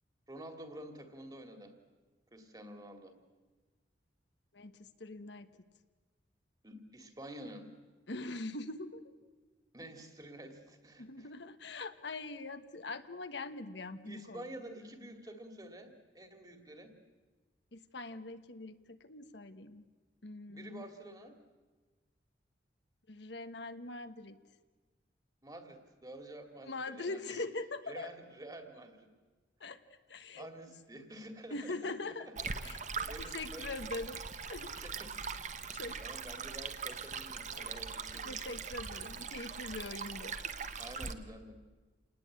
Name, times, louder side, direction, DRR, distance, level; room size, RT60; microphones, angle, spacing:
voice 1, 0.3-1.7 2.3-3.1 6.6-7.7 9.7-11.3 14.0-17.0 20.5-21.4 25.4-27.5 27.9-29.1 30.4-32.0 32.4-33.8 34.8-35.1 36.0-38.4 40.8-41.6, right 1 dB, 20° right, 6 dB, 2.4 m, -49 dB
voice 2, 4.5-5.5 8.1-9.1 11.0-14.4 17.7-19.8 20.2-20.9 23.1-24.4 26.6-28.1 29.6-30.5 31.5-32.3 32.6-32.8 33.2-34.2 34.5-34.8 35.7-36.0 37.5-37.8 38.2-40.7, left 2 dB, 70° left, 9 dB, 1.3 m, -43 dB
Stream, 32.4-41.1, right 5 dB, 40° right, 1.2 m, -41 dB
28.5 x 19.5 x 8.7 m, 1.4 s
head